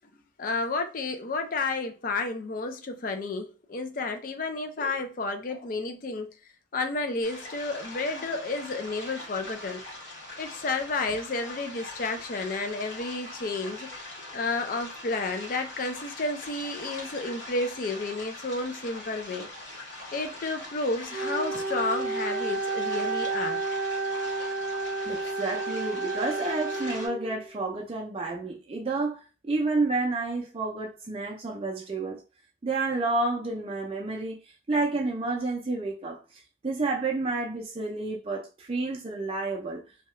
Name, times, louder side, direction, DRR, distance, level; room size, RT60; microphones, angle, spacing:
voice 1, 0.4-6.3 6.7-9.8 10.4-13.9 14.3-19.5 20.1-23.7, left 3 dB, 45° left, 0.4 m, -31 dB
sound 1, 7.2-27.1, left 2 dB, 75° left, 1.4 m, -42 dB
Wind instrument woodwind instrument, 21.1-27.5, right 3 dB, 60° right, 0.7 m, -31 dB
voice 2, 25.0-32.2 32.6-34.4 34.7-36.2 36.6-39.8, right 3 dB, 30° right, 0.4 m, -30 dB
2.8 x 2.3 x 3.0 m
head